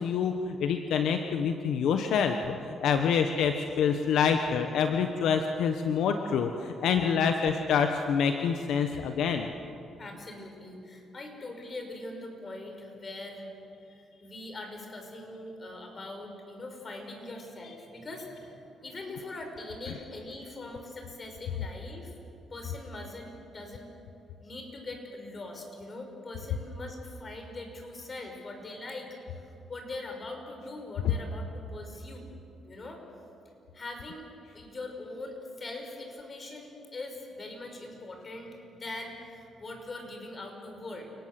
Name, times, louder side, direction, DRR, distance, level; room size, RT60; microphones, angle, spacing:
voice 1, 0.0-9.5, left 6 dB, 80° left, 6 dB, 1.2 m, -27 dB
voice 2, 10.0-13.5 14.0-22.1 22.5-23.9 24.4-29.4 29.7-32.3 32.6-33.0 33.7-34.3 34.5-41.1, left 2 dB, 35° left, 3 dB, 5.7 m, -42 dB
29.0 x 19.0 x 7.7 m, 2.7 s
cardioid pair, 90°, 0 cm